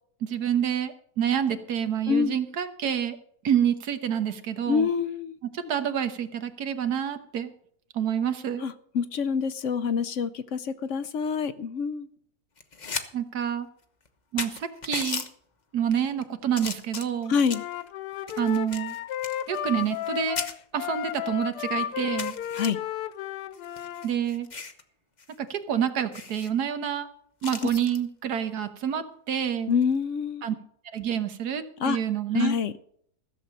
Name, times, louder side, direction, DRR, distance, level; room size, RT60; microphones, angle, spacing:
voice 1, 0.2-3.2 3.4-4.9 5.5-7.5 7.9-8.6 13.1-13.7 14.3-15.2 15.7-17.3 18.4-19.0 19.5-20.4 20.7-22.3 24.0-24.5 25.4-27.1 27.4-29.7 30.4-30.5 30.9-32.6, right 9 dB, 80° right, 9 dB, 1.6 m, -28 dB
voice 2, 2.1-2.4 4.7-5.4 8.6-12.1 17.3-17.6 22.5-22.8 29.7-30.4 31.8-32.0 32.3-32.7, left 6 dB, 65° left, 13 dB, 0.8 m, -26 dB
sound 1, 12.6-13.1 13.4-13.5 14.1-14.2 14.4-15.3 16.0-16.2 16.6-17.7 18.3-20.1 20.4-20.5 21.2-21.3 21.6-21.7 22.2-22.7 23.5-24.8 25.2-25.3 25.6-25.7 26.1-26.5 27.4-28.0 29.7-30.0, left 5 dB, 35° left, 0.9 m, -36 dB
Wind instrument woodwind instrument, 17.5-24.1, left 12 dB, 90° left, 1.2 m, -33 dB
15.0 x 7.1 x 6.5 m, 0.64 s
omnidirectional pair, 1.7 m